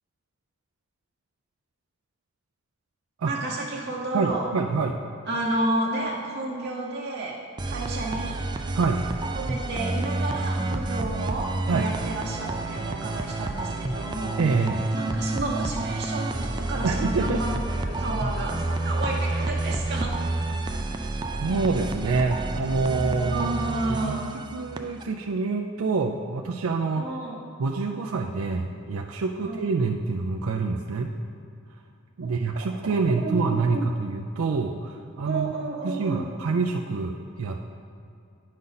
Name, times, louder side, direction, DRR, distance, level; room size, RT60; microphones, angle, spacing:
voice 1, 3.3-4.5 5.3-7.4 7.7-8.4 9.4-14.4 14.9-20.2 23.3-24.4 27.0-27.4 29.4-29.6 32.2-33.9 35.2-36.3, right 2 dB, 50° right, -3 dB, 0.8 m, -31 dB
voice 2, 4.1-5.0 8.7-9.0 11.7-11.9 14.4-14.9 16.8-17.4 20.5-20.7 21.4-23.5 23.9-24.2 24.5-27.1 27.6-31.1 32.2-35.5 35.8-37.6, right 4 dB, 85° right, 1 dB, 0.4 m, -26 dB
sound 1, 7.6-25.0, right 2 dB, 20° right, 0.3 m, -29 dB
9.6 x 5.3 x 4.0 m, 2.5 s
head